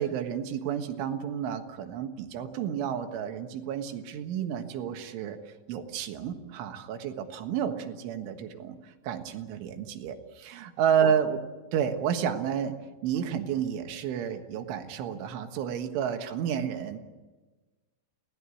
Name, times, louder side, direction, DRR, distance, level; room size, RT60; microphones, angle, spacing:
voice 1, 0.0-5.4 5.7-11.4 11.7-12.8 13.0-17.0, right 8 dB, 80° right, 7 dB, 3.9 m, -31 dB
28.5 x 17.5 x 8.5 m, 1.3 s
omnidirectional pair, 5.5 m